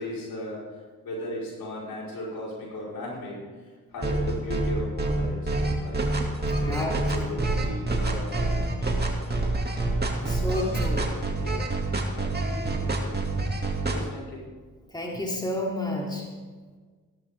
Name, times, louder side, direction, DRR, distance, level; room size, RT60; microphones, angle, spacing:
voice 1, 0.0-9.5 10.4-11.0 11.4-11.6 12.1-14.4 15.1-15.2, left 1 dB, 75° left, -4 dB, 4.9 m, -38 dB
sound 1, 4.0-14.0, right 2 dB, 25° right, 2.5 m, -26 dB
voice 2, 6.6-7.7 10.3-11.1 14.9-16.3, left 1 dB, 10° left, -2 dB, 3.0 m, -31 dB
15.0 x 12.5 x 3.7 m, 1.4 s
cardioid pair, 60°, 36 cm